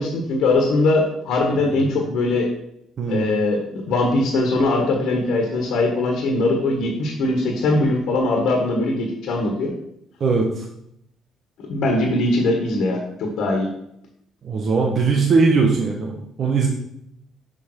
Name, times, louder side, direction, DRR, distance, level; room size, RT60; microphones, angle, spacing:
voice 1, 0.0-2.5 3.1-9.7 11.7-13.7, left 2 dB, 75° left, 1 dB, 1.6 m, -21 dB
voice 2, 10.2-10.6 14.4-16.7, right 4 dB, 55° right, 1 dB, 1.2 m, -20 dB
6.4 x 5.6 x 4.5 m, 0.76 s
supercardioid pair, 65°, 0 cm